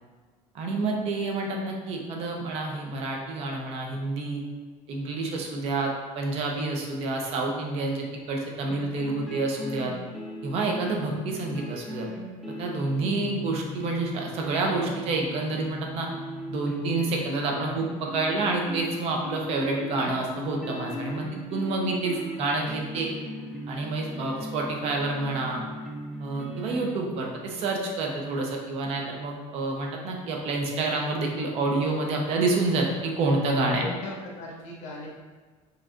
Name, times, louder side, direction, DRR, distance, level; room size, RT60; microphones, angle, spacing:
voice 1, 0.5-4.4 4.9-9.9 10.4-12.1 12.5-16.1 16.5-21.2 21.5-23.1 23.7-25.6 26.2-33.8, right 3 dB, 50° right, 0 dB, 0.7 m, -28 dB
sound 1, 8.7-27.0, left 1 dB, ahead, 0.3 m, -38 dB
voice 2, 33.8-35.1, left 1 dB, 65° left, -3 dB, 1.1 m, -38 dB
5.0 x 3.1 x 2.5 m, 1.5 s
cardioid pair, 175°, 13 cm